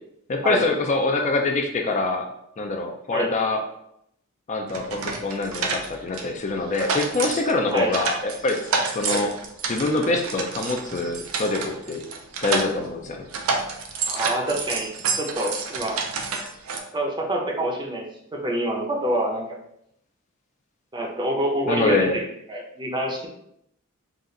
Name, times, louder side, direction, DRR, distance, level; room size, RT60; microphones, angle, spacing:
voice 1, 0.3-2.3 2.6-3.6 4.5-8.6 8.9-9.3 9.7-12.0 12.4-13.2 21.7-22.2, left 3 dB, 35° left, 3 dB, 0.4 m, -25 dB
sound 1, 4.7-6.3 6.6-13.0 13.3-16.8, right 4 dB, 90° right, 0.6 m, -29 dB
voice 2, 14.1-14.9 15.2-16.0 16.9-18.1 18.3-19.6 20.9-23.3, right 1 dB, 20° right, 0 dB, 0.6 m, -26 dB
4.1 x 2.4 x 3.8 m, 0.76 s
head